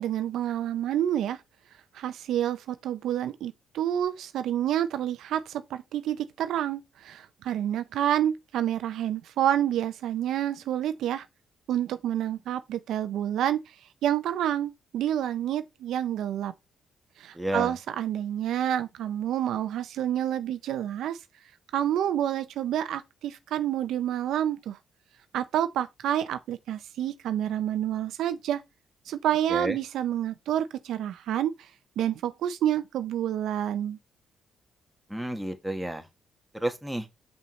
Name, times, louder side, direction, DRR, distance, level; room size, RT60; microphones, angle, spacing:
voice 1, 0.0-1.4 1.9-11.3 11.7-13.6 14.0-16.5 17.2-21.2 21.7-24.8 25.3-28.6 29.1-31.7 32.0-34.0, right 11 dB, 80° right, 0.5 m, -28 dB
voice 2, 17.3-17.8 29.5-29.8 35.1-36.0 36.5-37.1, right 1 dB, 5° right, 1.2 m, -31 dB
5.5 x 5.4 x 3.1 m
cardioid pair, 90°, 0 cm